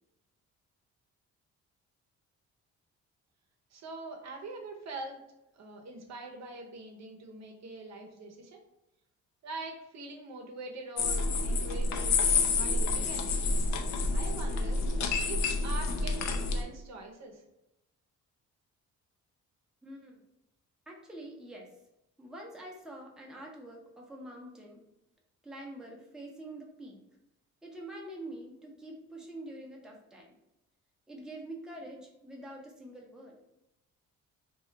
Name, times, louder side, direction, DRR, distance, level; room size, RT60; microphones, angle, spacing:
voice 1, 3.7-5.2 5.5-8.6 9.4-12.2 12.5-13.3 14.0-14.8 15.2-17.4, right 2 dB, 60° right, 2 dB, 0.7 m, -43 dB
sound 1, 11.0-16.6, left 3 dB, 65° left, 0.5 m, -28 dB
voice 2, 19.8-20.2 20.9-21.7 22.2-24.8 25.4-27.0 27.6-30.4 31.1-33.4, right 1 dB, ahead, -2 dB, 0.6 m, -45 dB
2.3 x 2.1 x 3.8 m, 0.87 s
cardioid pair, 90°, 30 cm